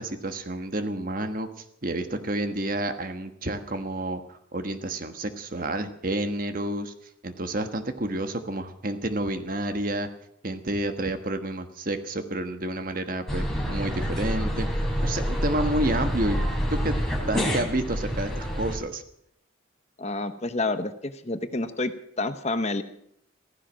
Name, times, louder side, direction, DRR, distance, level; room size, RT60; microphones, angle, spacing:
voice 1, 0.0-6.9 7.2-10.1 10.4-14.7 15.0-16.4 16.7-16.9 17.3-19.0, right 1 dB, 45° right, 8 dB, 1.4 m, -30 dB
sound 1, 13.3-18.8, equal, 5° left, 3.6 m, -27 dB
voice 2, 20.0-21.9 22.2-22.8, left 2 dB, 35° left, 10 dB, 0.9 m, -28 dB
15.5 x 15.0 x 6.3 m, 0.72 s
head